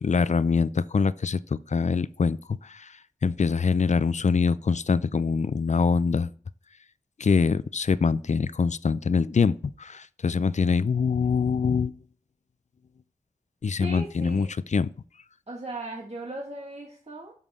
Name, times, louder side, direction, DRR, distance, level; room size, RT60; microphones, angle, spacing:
voice 1, 0.0-2.4 2.6-2.9 3.2-6.3 7.2-11.9 13.6-14.9, left 5 dB, 60° left, 0.4 m, -24 dB
voice 2, 13.8-14.5 15.5-17.3, right 2 dB, 50° right, 1.8 m, -37 dB
7.2 x 6.8 x 3.6 m
wide cardioid pair, 45°, 14 cm